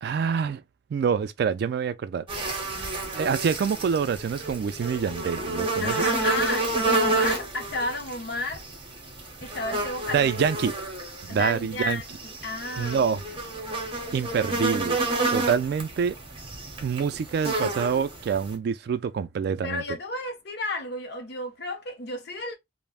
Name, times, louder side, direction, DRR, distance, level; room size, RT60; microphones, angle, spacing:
voice 1, 0.0-0.6 0.9-2.2 3.1-6.1 10.1-10.7 11.2-12.0 12.8-13.2 14.1-15.0 15.3-16.2 16.8-19.8, right 6 dB, 60° right, 0.3 m, -26 dB
sound 1, 2.3-18.5, right 2 dB, 30° right, 0.8 m, -30 dB
voice 2, 5.8-8.6 9.4-10.5 11.3-13.3 19.6-22.6, left 2 dB, 60° left, 0.8 m, -32 dB
3.3 x 2.0 x 2.3 m
head